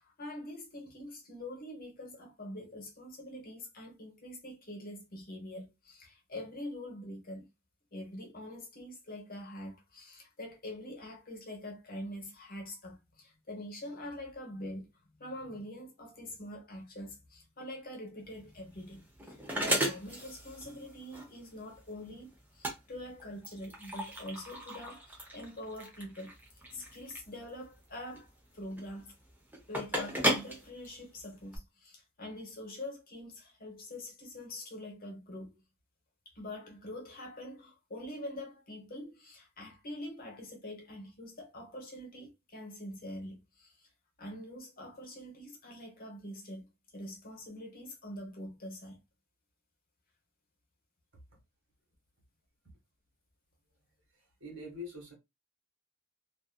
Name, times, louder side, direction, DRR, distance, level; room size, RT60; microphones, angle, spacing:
voice 1, 0.0-7.5 7.9-26.3 26.7-29.2 29.7-35.6 36.2-43.9 44.2-49.0, left 1 dB, 40° left, 0.9 m, -45 dB
sound 1, 18.3-31.6, right 1 dB, 10° right, 0.7 m, -37 dB
voice 2, 54.4-55.1, left 2 dB, 60° right, 1.3 m, -43 dB
2.5 x 2.5 x 2.2 m
head